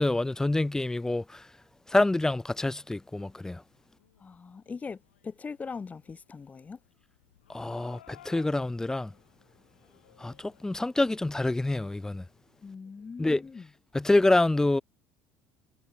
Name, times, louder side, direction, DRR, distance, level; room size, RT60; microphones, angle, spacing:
voice 1, 0.0-1.5 1.9-3.6 7.5-9.1 10.2-12.2 13.2-13.4 13.9-14.8, left 2 dB, 10° left, 0.7 m, -26 dB
sound 1, 2.6-13.3, left 12 dB, 85° left, 7.0 m, -61 dB
voice 2, 4.2-6.8 12.6-13.7, left 5 dB, 25° left, 1.4 m, -41 dB
hypercardioid pair, 70°, 6 cm